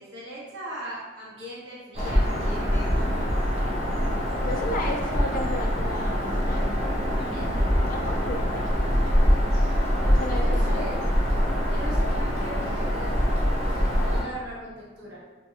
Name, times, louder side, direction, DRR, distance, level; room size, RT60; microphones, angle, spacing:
voice 1, 0.0-3.4 7.2-7.7 10.0-11.0 11.7-15.2, equal, 60° right, -6 dB, 0.8 m, -39 dB
Bird vocalization bird call bird song, 1.9-14.2, equal, 30° right, 0.6 m, -24 dB
voice 2, 4.4-6.8 7.9-8.7 10.0-11.0, left 1 dB, 45° left, 0 dB, 0.4 m, -33 dB
2.9 x 2.2 x 3.0 m, 1.3 s
head